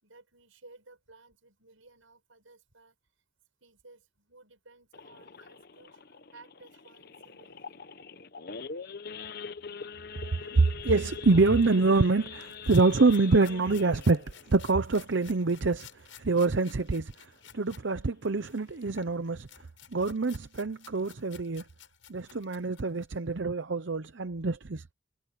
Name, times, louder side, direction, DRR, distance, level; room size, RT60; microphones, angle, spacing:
voice 1, 0.0-3.0 3.6-7.8 20.0-20.1, right 3 dB, 85° right, 6.9 m, -57 dB
Idling / Accelerating revving vroom / Sawing, 4.9-16.0 16.4-16.6 16.9-17.0 17.4-17.7 18.2-18.3 18.5-18.8, left 5 dB, 50° left, 0.8 m, -44 dB
voice 2, 10.3-15.9 16.2-17.1 17.5-19.5 19.9-21.6 22.1-24.8, right 3 dB, 65° right, 0.7 m, -25 dB
sound 1, 12.3-17.8 18.2-23.2, left 9 dB, 75° left, 6.9 m, -54 dB
head